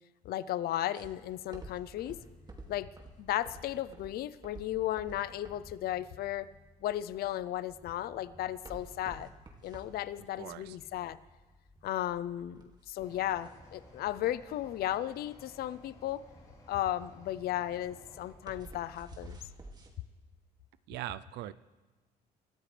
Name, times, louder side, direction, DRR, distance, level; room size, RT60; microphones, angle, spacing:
voice 1, 0.2-2.2 2.7-2.9 3.2-6.5 6.8-9.3 9.6-11.2 11.8-16.2 16.7-19.4, left 13 dB, 65° left, 16 dB, 0.6 m, -35 dB
sound 1, 0.9-19.9, right 2 dB, 25° right, 2.3 m, -51 dB
sound 2, 2.2-18.5, equal, ahead, 3.3 m, -61 dB
voice 2, 10.4-10.8 20.9-21.5, right 14 dB, 85° right, 16 dB, 0.5 m, -40 dB
sound 3, 13.0-18.3, left 1 dB, 20° left, 3.4 m, -56 dB
26.5 x 13.0 x 3.3 m, 1.2 s
cardioid pair, 110°, 17 cm